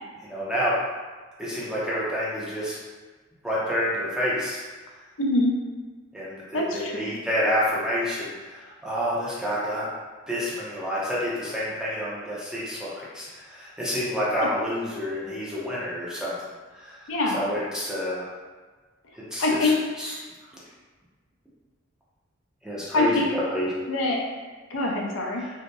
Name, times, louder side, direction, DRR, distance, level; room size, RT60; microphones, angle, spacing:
voice 1, 0.2-0.7 1.4-2.8 3.4-4.6 6.1-9.8 10.3-16.3 16.7-18.3 19.1-19.7 20.0-20.1 22.6-23.7 25.4-25.5, equal, 5° right, -8 dB, 0.5 m, -28 dB
voice 2, 5.2-5.5 6.5-7.2 14.3-14.6 17.1-17.5 19.4-19.7 22.9-23.3 23.9-24.2 24.7-25.4, left 2 dB, 70° left, -1 dB, 0.4 m, -24 dB
2.7 x 2.0 x 2.2 m, 1.4 s
head